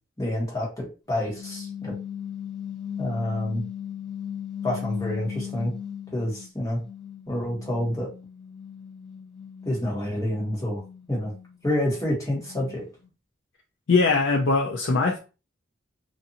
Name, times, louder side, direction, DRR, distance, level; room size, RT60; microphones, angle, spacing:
voice 1, 0.2-1.9 3.0-3.6 4.6-5.7 6.1-6.8 7.3-8.1 9.6-10.8 11.1-11.3 11.6-12.9, left 1 dB, 15° left, 1.1 m, -28 dB
sound 1, 1.2-6.5 6.8-13.1, left 9 dB, ahead, 1.3 m, -38 dB
voice 2, 13.9-15.2, left 4 dB, 60° left, 0.4 m, -21 dB
2.6 x 2.5 x 2.7 m
head